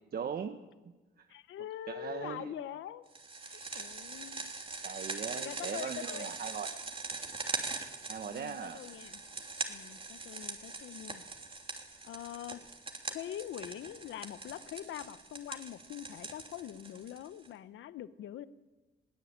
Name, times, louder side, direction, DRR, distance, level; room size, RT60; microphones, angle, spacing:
voice 1, 0.1-0.6 1.2-1.3 1.9-2.5 3.5-3.9 4.5-6.7 8.1-8.8, right 7 dB, 50° right, 7 dB, 1.2 m, -40 dB
voice 2, 1.3-3.0 3.4-4.5 5.3-6.3 8.3-9.2 9.7-11.2 12.0-12.6 13.1-18.4, left 11 dB, 75° left, 14 dB, 0.9 m, -44 dB
sound 1, 3.1-17.5, right 3 dB, 25° right, 3.1 m, -42 dB
21.5 x 16.5 x 8.7 m, 1.2 s
cardioid pair, 90°, 20 cm